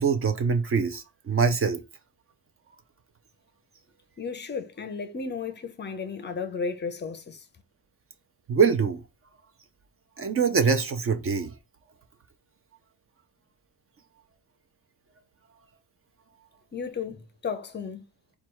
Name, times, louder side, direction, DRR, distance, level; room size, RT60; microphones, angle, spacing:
voice 1, 0.0-1.8 8.5-9.0 10.2-11.5, right 5 dB, 35° right, 0.5 m, -24 dB
voice 2, 4.2-7.4 16.7-18.0, left 5 dB, 30° left, 0.5 m, -34 dB
4.4 x 2.3 x 4.5 m
cardioid pair, 170°, 38 cm